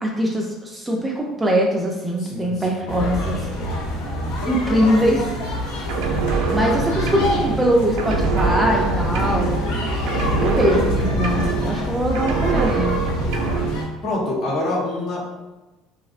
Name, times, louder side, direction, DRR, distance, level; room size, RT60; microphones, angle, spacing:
voice 1, 0.0-3.4 4.5-5.2 6.5-9.5 10.3-13.0, equal, 10° right, -1 dB, 0.4 m, -22 dB
voice 2, 2.2-3.2 12.5-12.7 14.0-15.2, left 2 dB, 50° left, -4 dB, 0.9 m, -26 dB
sound 1, 2.9-13.9, left 1 dB, 85° left, 0.6 m, -26 dB
sound 2, 5.9-7.7 8.0-9.8 10.1-11.9 12.1-13.8, right 4 dB, 80° right, 0.4 m, -24 dB
2.7 x 2.0 x 2.4 m, 1.1 s
supercardioid pair, 110°, 0 cm